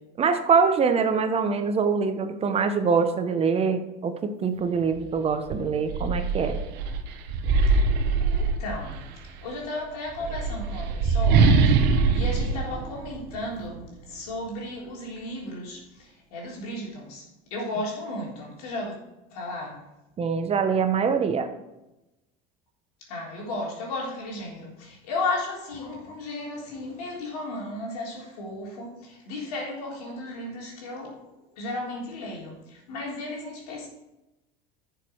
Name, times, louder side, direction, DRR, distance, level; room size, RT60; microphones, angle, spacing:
voice 1, 0.2-6.6 20.2-21.5, right 5 dB, 30° right, 7 dB, 1.2 m, -24 dB
sound 1, 4.9-5.1 5.5-9.1 10.1-13.7, right 4 dB, 60° right, 1.3 m, -23 dB
voice 2, 8.3-17.2 17.5-19.0 19.3-19.8 23.0-31.2 31.6-33.9, left 2 dB, 85° left, -2 dB, 3.7 m, -34 dB
11.0 x 6.8 x 4.7 m, 0.95 s
supercardioid pair, 100°, 19 cm